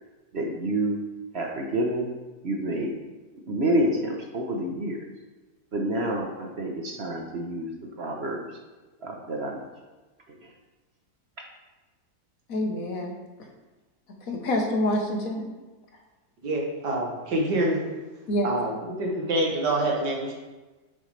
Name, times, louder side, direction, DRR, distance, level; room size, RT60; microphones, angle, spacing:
voice 1, 0.3-1.0 1.3-2.1 2.4-2.9 3.5-5.0 5.7-7.7 8.0-8.5 9.0-9.6 10.3-10.5 11.4-11.5, right 1 dB, 45° right, 0.9 m, -28 dB
voice 2, 12.5-13.1 14.2-15.4 18.3-18.5, left 1 dB, 55° left, 1.4 m, -26 dB
voice 3, 16.4-17.8 18.4-20.3, right 1 dB, 80° right, 2.1 m, -26 dB
9.2 x 7.0 x 3.3 m
omnidirectional pair, 1.8 m